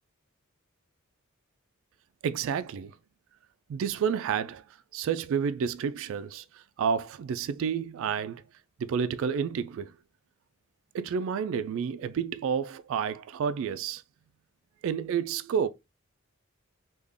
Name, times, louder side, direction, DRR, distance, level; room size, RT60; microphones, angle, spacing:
voice 1, 2.2-2.9 3.7-4.6 4.9-6.4 6.8-8.4 8.8-9.9 10.9-14.0 14.8-15.7, right 7 dB, 65° right, 0.3 m, -30 dB
3.6 x 2.3 x 3.4 m
head